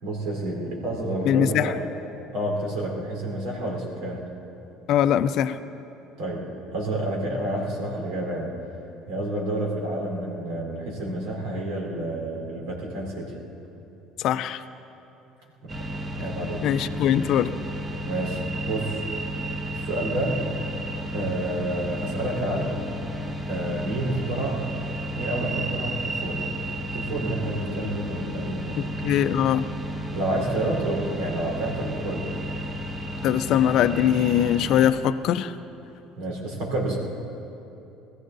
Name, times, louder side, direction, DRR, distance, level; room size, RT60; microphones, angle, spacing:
voice 1, 0.0-1.9 2.3-4.3 6.2-8.6 9.1-13.3 15.8-15.9 16.2-16.6 18.0-19.0 19.8-20.5 21.1-22.8 23.5-24.7 25.2-26.4 26.9-28.7 30.1-32.3 36.2-37.0, right 1 dB, 70° right, -2 dB, 4.2 m, -29 dB
voice 2, 1.3-1.8 4.9-5.6 14.2-14.6 16.6-17.5 28.8-29.6 33.2-35.6, left 10 dB, 60° left, 11 dB, 0.5 m, -22 dB
sound 1, 15.7-34.9, equal, 25° right, 1.8 m, -32 dB
21.5 x 14.5 x 4.0 m, 2.9 s
hypercardioid pair, 70°, 0 cm